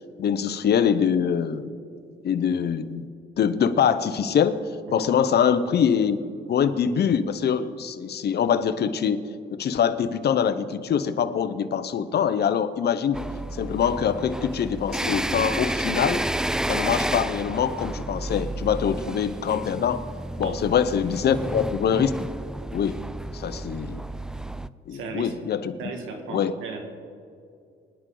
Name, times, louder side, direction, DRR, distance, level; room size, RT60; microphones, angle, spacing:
voice 1, 0.2-1.8 2.2-3.1 3.4-4.6 4.9-6.2 6.5-9.2 9.5-13.2 13.6-16.2 16.7-20.1 20.4-22.1 22.7-23.0 23.3-24.0 24.9-25.7 26.3-26.5, left 7 dB, 55° left, 12 dB, 0.8 m, -24 dB
subway drilling, 13.1-24.7, right 1 dB, 5° right, 0.3 m, -31 dB
voice 2, 20.4-20.7 24.9-25.3 25.8-26.8, right 4 dB, 85° right, 3 dB, 2.0 m, -36 dB
24.5 x 9.9 x 3.9 m, 2.3 s
cardioid pair, 95°, 20 cm